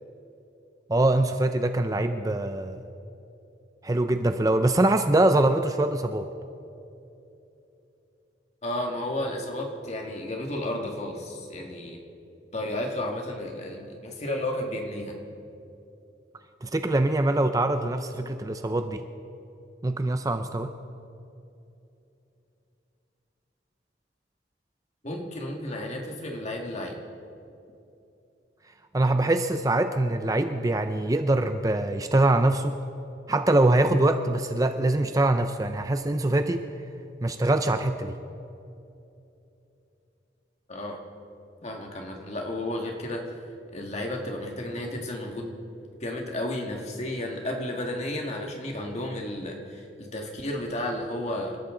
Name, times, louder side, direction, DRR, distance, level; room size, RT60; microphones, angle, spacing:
voice 1, 0.9-2.8 3.8-6.3 16.6-19.0 19.8-20.7 28.9-32.7 33.3-36.6 37.2-38.1, right 2 dB, 20° right, 8 dB, 0.5 m, -23 dB
voice 2, 8.6-12.0 12.5-15.1 25.0-27.0 40.7-41.0 41.6-43.2 43.7-45.5 46.0-51.6, left 1 dB, 35° left, 1 dB, 1.9 m, -32 dB
27.5 x 13.0 x 3.8 m, 2.8 s
head